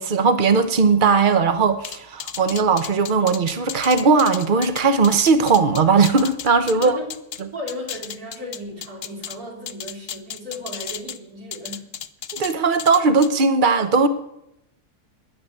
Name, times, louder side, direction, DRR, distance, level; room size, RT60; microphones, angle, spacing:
voice 1, 0.0-7.0 12.3-14.1, right 4 dB, 35° right, 0.9 m, -18 dB
sound 1, 1.8-7.4 7.7-9.4 9.7-11.2 11.5-12.5 12.8-13.3, left 9 dB, 65° left, 0.6 m, -34 dB
voice 2, 6.7-7.1 7.5-12.0, equal, 60° right, 4.0 m, -35 dB
10.5 x 9.4 x 8.7 m
omnidirectional pair, 1.8 m